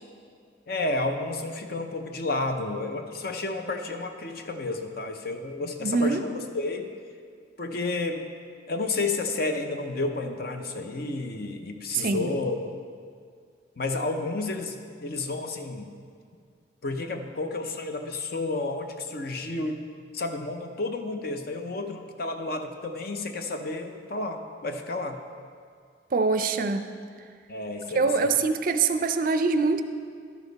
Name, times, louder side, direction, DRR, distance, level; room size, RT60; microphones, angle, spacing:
voice 1, 0.7-6.9 7.6-8.2 8.7-12.7 13.8-15.8 16.8-19.8 20.1-25.2 27.5-28.4, left 2 dB, 50° left, 6 dB, 0.7 m, -31 dB
voice 2, 5.8-6.2 11.9-12.3 26.1-26.8 27.9-29.8, right 4 dB, 45° right, 9 dB, 0.4 m, -24 dB
11.5 x 7.2 x 4.0 m, 2.2 s
head